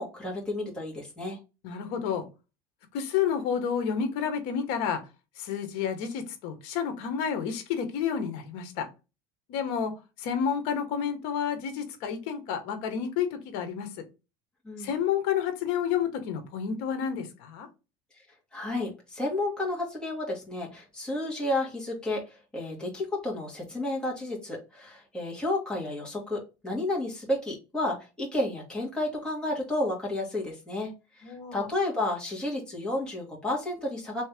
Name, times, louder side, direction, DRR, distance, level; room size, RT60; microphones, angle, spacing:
voice 1, 0.0-1.4 14.6-15.0 18.5-34.2, left 1 dB, 10° left, 1.7 m, -31 dB
voice 2, 1.6-2.3 2.9-5.0 5.4-8.9 9.5-13.9 14.8-17.7 31.2-31.7, left 7 dB, 70° left, 1.1 m, -30 dB
3.6 x 3.1 x 3.5 m
cardioid pair, 140°, 11 cm